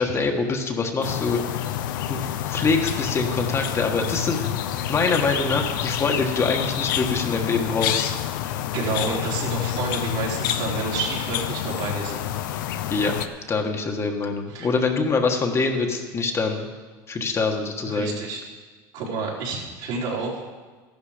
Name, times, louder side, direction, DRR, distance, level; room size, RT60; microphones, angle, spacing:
voice 1, 0.0-1.4 2.1-2.2 2.5-4.4 4.9-8.1 12.9-13.1 13.5-16.7 17.1-18.1, left 4 dB, 25° left, 3 dB, 1.5 m, -24 dB
sound 1, 1.0-13.3, left 11 dB, 90° left, 0.8 m, -28 dB
voice 2, 8.7-12.2 14.5-14.7 17.9-18.4 18.9-20.4, right 4 dB, 65° right, -4 dB, 4.4 m, -29 dB
14.0 x 11.5 x 5.1 m, 1.4 s
supercardioid pair, 130°, 10 cm